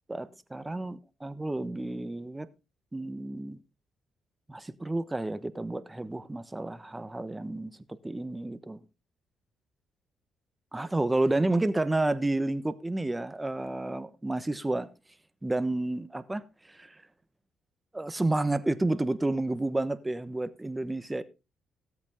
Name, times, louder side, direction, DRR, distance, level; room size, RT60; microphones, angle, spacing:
voice 1, 0.1-2.5 2.9-3.6 4.5-8.8 10.7-14.9 15.4-17.0 17.9-21.2, right 2 dB, 15° right, 1.2 m, -30 dB
16.0 x 8.3 x 3.7 m
supercardioid pair, 60°, 0 cm